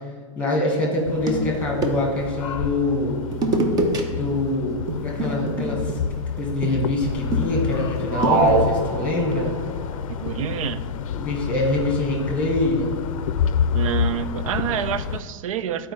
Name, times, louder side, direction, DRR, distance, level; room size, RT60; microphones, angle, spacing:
voice 1, 0.3-3.2 4.2-5.9 6.4-9.5 11.0-12.9, left 2 dB, 10° left, -1 dB, 1.6 m, -24 dB
sound 1, 0.9-2.3 3.3-4.0 4.3-4.5 4.9-8.9, right 2 dB, 25° right, 0.8 m, -27 dB
sound 2, 1.0-15.2, left 7 dB, 80° left, 0.5 m, -29 dB
sound 3, 8.1-9.6, right 3 dB, 50° right, 0.8 m, -22 dB
voice 2, 10.1-10.8 13.7-15.9, right 9 dB, 80° right, 13 dB, 0.5 m, -27 dB
11.0 x 4.5 x 3.2 m, 1.6 s
supercardioid pair, 145°, 17 cm